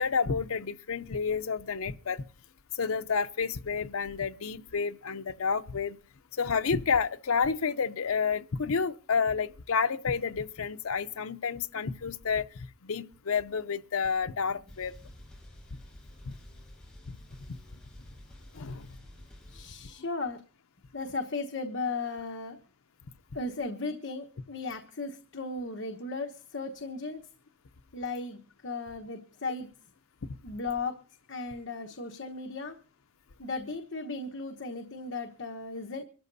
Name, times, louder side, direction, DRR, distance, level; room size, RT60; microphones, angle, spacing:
voice 1, 0.0-2.2 2.7-6.0 6.4-14.9 16.3-16.4 18.5-18.9, left 5 dB, 85° left, 0.6 m, -30 dB
sound 1, 14.7-19.7, left 1 dB, 5° left, 6.2 m, -50 dB
voice 2, 19.5-20.4 20.9-22.6 23.3-27.2 27.9-29.7 30.4-31.0 31.3-32.8 33.4-36.0, left 3 dB, 60° left, 1.2 m, -36 dB
25.0 x 13.5 x 2.7 m
head